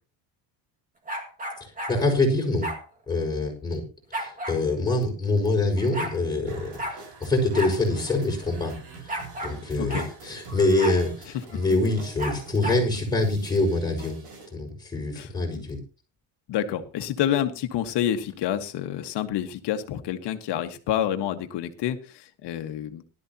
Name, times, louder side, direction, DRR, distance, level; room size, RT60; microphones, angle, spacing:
sound 1, 1.1-2.0 2.6-2.8 4.1-4.6 5.5-5.6 5.8-6.2 6.8-7.0 7.5-7.8 8.1-8.2 9.1-9.6 9.9-10.1 10.8-11.0 12.2-12.8, right 1 dB, 15° right, 2.1 m, -32 dB
voice 1, 1.9-2.7 3.1-3.8 4.1-8.7 9.1-9.2 9.4-14.2 14.5-15.8, left 2 dB, 10° left, -1 dB, 5.5 m, -25 dB
sound 2, 6.5-14.5, right 4 dB, 60° right, 5.6 m, -45 dB
voice 2, 15.2-15.6 16.5-23.0, left 10 dB, 60° left, 7 dB, 1.7 m, -28 dB
19.0 x 12.5 x 2.9 m, 0.33 s
cardioid pair, 145°, 46 cm